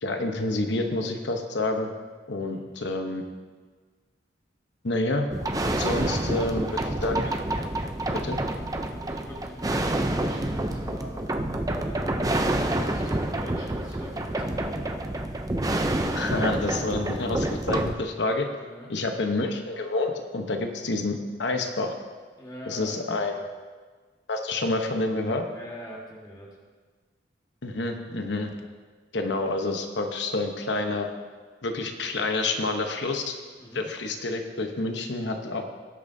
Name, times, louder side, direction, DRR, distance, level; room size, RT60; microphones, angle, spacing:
voice 1, 0.0-1.9 2.3-3.2 4.8-5.3 5.8-6.7 7.0-7.3 8.2-8.4 16.1-18.5 18.9-22.0 22.7-23.4 24.3-25.5 27.6-28.5 29.1-31.1 31.6-33.4 33.7-35.6, left 2 dB, 65° left, 5 dB, 0.9 m, -28 dB
sound 1, 5.3-17.9, right 1 dB, 20° right, 0.5 m, -28 dB
voice 2, 8.9-11.2 11.7-15.0 18.6-18.9 22.4-23.4 25.5-26.6 33.6-33.8, equal, 20° left, -3 dB, 1.6 m, -44 dB
18.5 x 8.6 x 2.7 m, 1.4 s
head